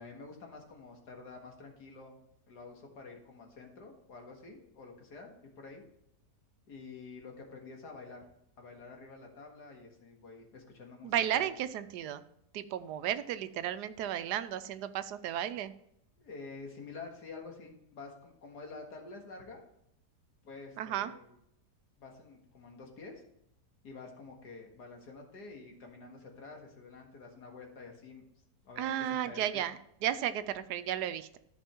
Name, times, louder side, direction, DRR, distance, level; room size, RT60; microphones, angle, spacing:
voice 1, 0.0-2.2 2.5-5.8 6.7-8.2 8.6-11.5 16.2-19.6 20.4-21.3 22.0-23.2 23.8-28.2 28.6-29.6, left 4 dB, 75° left, 2 dB, 2.3 m, -49 dB
voice 2, 11.0-12.2 12.5-15.7 20.8-21.1 28.8-31.4, right 11 dB, 85° right, 12 dB, 1.2 m, -34 dB
13.5 x 5.4 x 4.4 m, 0.76 s
omnidirectional pair, 1.7 m